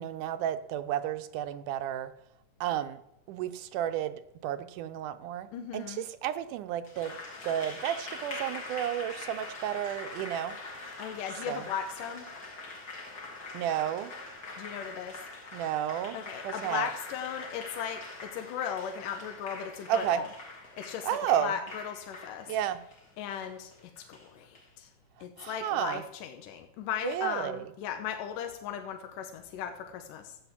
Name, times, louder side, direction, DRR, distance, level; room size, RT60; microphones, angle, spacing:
voice 1, 0.0-2.1 2.6-3.0 3.3-7.2 7.4-10.6 11.5-11.6 13.5-14.1 15.5-16.2 16.4-16.9 19.9-20.2 21.0-21.5 22.5-22.8 25.4-26.0 27.0-27.6, right 11 dB, 80° right, 11 dB, 2.2 m, -32 dB
voice 2, 5.5-6.1 11.0-12.3 14.6-15.2 16.1-18.0 18.3-20.3 20.8-21.1 21.4-22.5 23.2-24.9 25.2-30.4, left 8 dB, 80° left, 5 dB, 2.6 m, -37 dB
Applause, 6.8-24.7, left 3 dB, 35° left, 2.2 m, -44 dB
14.0 x 8.8 x 7.4 m, 0.83 s
omnidirectional pair, 3.7 m